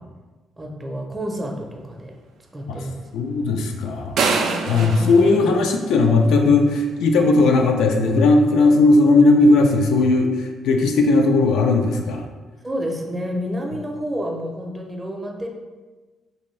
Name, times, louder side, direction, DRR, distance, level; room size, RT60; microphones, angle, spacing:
voice 1, 0.6-2.1 2.5-3.0 4.4-5.1 12.6-15.5, equal, 20° right, 1 dB, 0.5 m, -29 dB
voice 2, 3.1-4.2 4.7-12.3, left 3 dB, 85° left, 3 dB, 0.3 m, -17 dB
sound 1, 4.2-6.3, right 4 dB, 75° right, 0.3 m, -24 dB
2.7 x 2.5 x 3.1 m, 1.3 s
cardioid pair, 90°, 0 cm